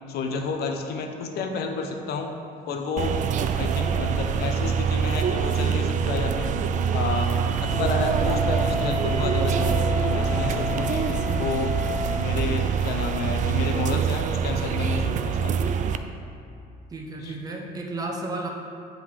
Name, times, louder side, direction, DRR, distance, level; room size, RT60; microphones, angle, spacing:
voice 1, 0.1-2.4 2.6-3.2 3.5-6.6 6.9-11.8 12.1-15.7 17.2-17.4, left 4 dB, 70° left, 4 dB, 0.8 m, -31 dB
sound 1, 3.0-16.0, right 7 dB, 50° right, 0.4 m, -25 dB
Wind instrument woodwind instrument, 7.6-12.2, left 5 dB, 25° left, 1.2 m, -32 dB
voice 2, 16.9-18.5, right 2 dB, 20° right, 0 dB, 0.8 m, -32 dB
7.8 x 3.8 x 4.7 m, 2.6 s
cardioid pair, 110°, 17 cm